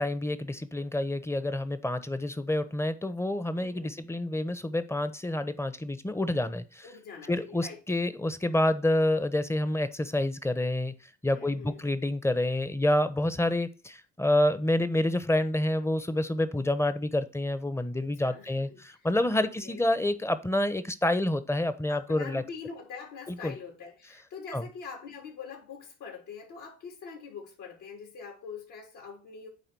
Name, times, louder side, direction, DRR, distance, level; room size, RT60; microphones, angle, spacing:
voice 1, 0.0-6.9 7.3-10.9 11.2-22.4 23.3-23.5 24.5-24.6, left 1 dB, 10° left, 1.0 m, -28 dB
voice 2, 3.6-4.0 6.8-7.8 11.3-11.8 18.0-19.0 19.4-19.8 21.9-29.5, left 5 dB, 65° left, 3.7 m, -44 dB
9.3 x 3.6 x 7.0 m
hypercardioid pair, 70°, 32 cm